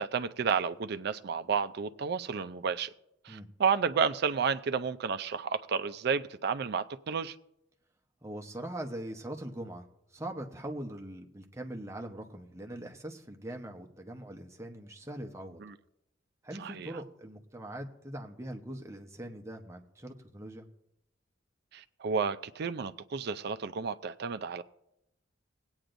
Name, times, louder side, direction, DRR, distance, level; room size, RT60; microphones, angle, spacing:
voice 1, 0.0-2.9 3.2-7.4 15.6-15.8 16.6-16.9 21.7-24.6, right 6 dB, 60° right, 0.4 m, -31 dB
voice 2, 8.2-15.6 16.4-20.7, right 1 dB, 15° right, 0.9 m, -42 dB
20.0 x 8.9 x 2.6 m
head